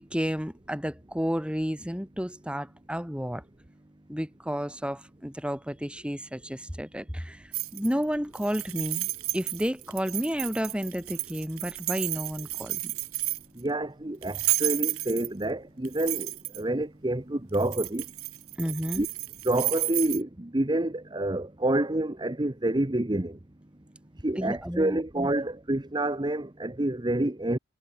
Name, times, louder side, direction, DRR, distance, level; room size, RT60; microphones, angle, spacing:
voice 1, 0.0-3.4 4.1-12.9 18.6-19.0 24.4-25.3, equal, 5° right, 5.0 m, -31 dB
sound 1, 7.5-8.0 8.3-13.6 14.2-15.4 15.8-16.6 17.5-20.2, right 18 dB, 90° right, 2.8 m, -32 dB
voice 2, 13.6-18.0 19.0-19.1 19.4-23.4 24.2-27.6, right 1 dB, 20° right, 0.9 m, -28 dB
head